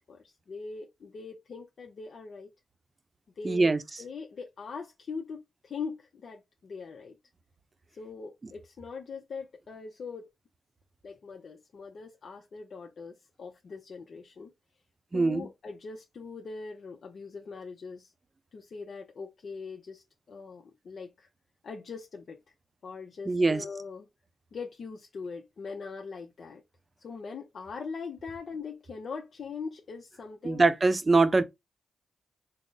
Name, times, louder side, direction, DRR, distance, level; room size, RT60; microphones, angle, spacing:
voice 1, 0.1-2.5 3.4-7.2 7.9-10.3 11.0-14.5 15.1-18.1 18.5-21.3 21.6-22.4 22.8-24.1 24.5-26.6 27.0-30.7, left 4 dB, 60° left, 0.6 m, -41 dB
voice 2, 3.4-3.8 15.1-15.5 23.3-23.6 30.4-31.4, right 3 dB, 35° right, 0.6 m, -23 dB
3.8 x 2.0 x 3.8 m
cardioid pair, 60°, 0 cm